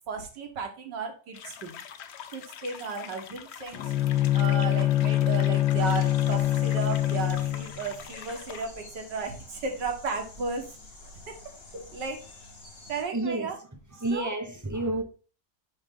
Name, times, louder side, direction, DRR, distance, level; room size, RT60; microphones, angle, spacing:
voice 1, 0.1-1.8 2.3-3.9 4.3-10.7 11.3-11.4 11.7-12.2 12.9-13.6 14.1-14.3, right 4 dB, 80° right, 2.0 m, -34 dB
sound 1, 1.3-8.7, left 8 dB, 70° left, 0.6 m, -44 dB
Bowed string instrument, 3.7-7.8, left 13 dB, 90° left, 1.3 m, -24 dB
sound 2, 5.7-13.0, left 2 dB, 55° left, 2.1 m, -48 dB
voice 2, 13.1-15.0, right 2 dB, 20° right, 0.4 m, -31 dB
9.6 x 3.2 x 3.7 m
omnidirectional pair, 1.8 m